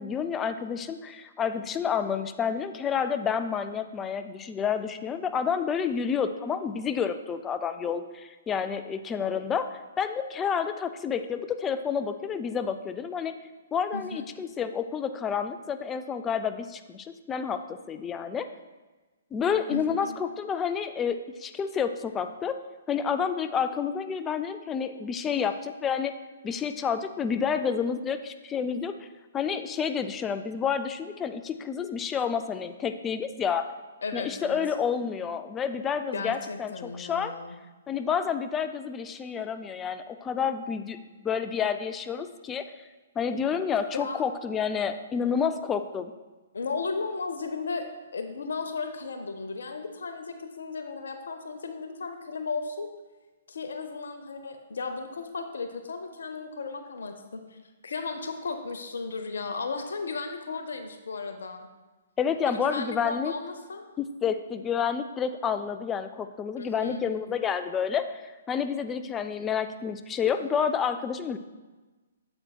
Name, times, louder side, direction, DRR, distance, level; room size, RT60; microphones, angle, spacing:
voice 1, 0.0-13.3 13.7-17.6 17.9-18.5 19.3-22.5 22.9-26.1 26.4-28.9 29.3-33.7 34.1-37.3 37.9-41.0 41.2-42.6 43.2-46.1 62.2-63.3 64.0-68.2 68.5-71.4, left 7 dB, 15° left, 9 dB, 0.4 m, -29 dB
voice 2, 13.9-14.2 19.7-20.2 34.0-34.6 36.1-37.5 44.0-44.2 46.5-47.9 48.1-52.9 53.5-61.7 62.5-63.9 66.6-67.1, left 4 dB, 70° left, 7 dB, 0.7 m, -35 dB
8.7 x 7.5 x 2.3 m, 1.2 s
figure-of-eight pair, 125°, 0 cm